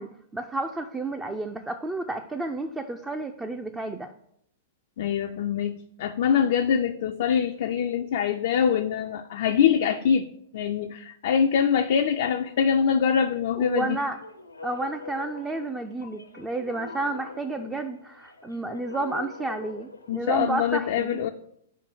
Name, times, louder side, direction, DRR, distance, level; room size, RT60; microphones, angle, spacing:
voice 1, 0.0-4.1 13.6-14.2 14.6-21.2, right 2 dB, 10° right, 6 dB, 0.4 m, -31 dB
voice 2, 5.0-14.0 20.1-21.3, left 7 dB, 55° left, 5 dB, 0.4 m, -24 dB
sound 1, 13.9-20.7, left 3 dB, 85° left, 0.7 m, -43 dB
5.2 x 4.5 x 6.2 m, 0.71 s
figure-of-eight pair, 105°, 0 cm